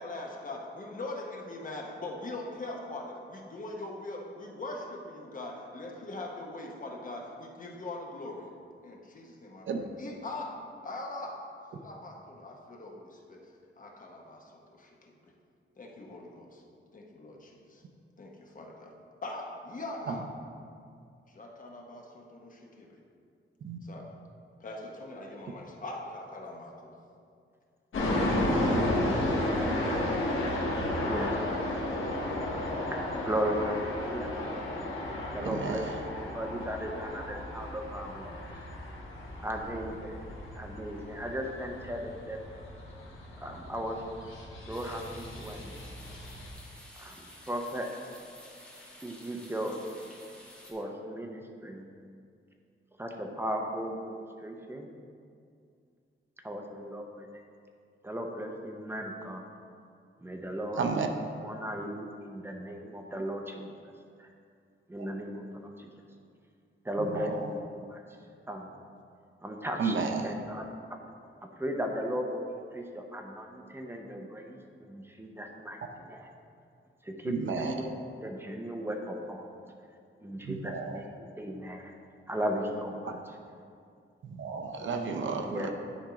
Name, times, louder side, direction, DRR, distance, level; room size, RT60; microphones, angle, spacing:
voice 1, 0.0-8.5 8.8-9.7 10.0-10.5 10.8-11.3 11.7-13.4 13.8-15.3 15.8-16.6 16.9-17.8 18.2-18.9 19.2-20.2 21.3-23.0 23.8-24.0 24.6-26.9, left 2 dB, 40° left, 0 dB, 0.9 m, -41 dB
sound 1, 27.9-46.5, left 1 dB, 70° left, 1.6 m, -33 dB
voice 2, 28.6-29.0 29.3-29.7 31.0-31.6 33.2-34.3 35.3-38.4 39.4-40.2 40.5-42.5 43.4-44.0 44.7-45.7 47.0-47.9 49.0-49.8 50.7-51.9 53.0-54.9 56.4-57.3 58.0-59.4 60.2-60.8 61.4-63.9 64.2-64.3 64.9-65.9 66.8-68.0 68.5-68.7 69.4-70.0 70.2-70.6 71.6-72.4 72.7-76.3 77.0-79.5 80.2-81.0 81.4-82.0 82.3-83.1 85.3-85.7, equal, 10° right, 2 dB, 0.7 m, -36 dB
voice 3, 35.4-36.0 60.8-61.1 67.1-67.5 69.8-70.3 77.3-77.8 80.4-81.0 83.1-83.2 84.2-85.7, right 5 dB, 65° right, 4 dB, 0.6 m, -32 dB
sound 2, 44.7-50.7, left 1 dB, 5° left, 1.2 m, -52 dB
10.5 x 3.5 x 5.1 m, 2.3 s
wide cardioid pair, 155°, 21 cm